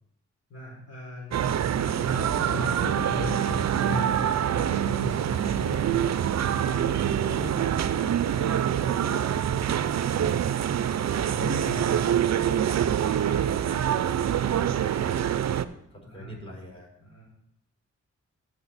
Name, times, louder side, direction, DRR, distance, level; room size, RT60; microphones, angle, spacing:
voice 1, 0.5-5.8 6.2-9.8 11.4-11.8 16.2-16.4 17.0-17.2, left 2 dB, 50° left, -4 dB, 3.5 m, -38 dB
sound 1, 1.3-15.6, right 10 dB, 60° right, 0.5 m, -25 dB
voice 2, 15.9-16.9, equal, 20° left, -2 dB, 4.3 m, -44 dB
14.5 x 5.0 x 4.2 m, 0.77 s
cardioid pair, 60°, 31 cm